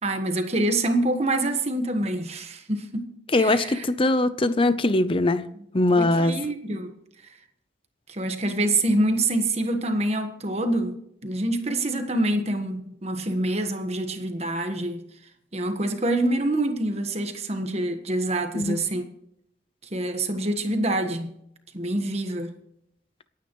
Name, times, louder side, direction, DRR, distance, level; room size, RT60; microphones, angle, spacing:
voice 1, 0.0-3.1 3.4-3.8 6.0-6.9 8.1-11.0 11.2-15.0 15.5-19.0 19.9-21.4 21.7-22.5, right 1 dB, 35° right, 1.5 m, -26 dB
voice 2, 3.3-5.5 5.7-6.4 18.5-18.8, left 2 dB, 30° left, 0.7 m, -21 dB
27.0 x 9.4 x 3.1 m
head